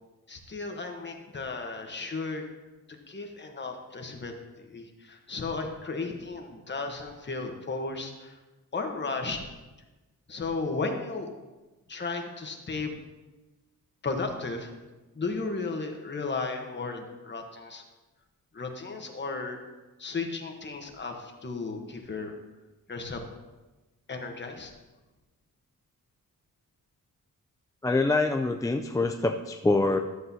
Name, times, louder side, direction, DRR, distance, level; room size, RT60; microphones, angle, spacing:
voice 1, 0.3-2.4 3.1-4.3 4.7-8.4 8.7-9.4 10.3-11.3 11.9-12.9 14.0-14.7 15.1-17.8 18.5-19.6 20.0-22.4 22.9-23.2 24.1-24.7, left 3 dB, 30° left, 3 dB, 1.1 m, -34 dB
voice 2, 27.8-30.0, left 2 dB, 10° left, 4 dB, 0.3 m, -25 dB
12.5 x 7.5 x 2.8 m, 1.1 s
wide cardioid pair, 115°, 34 cm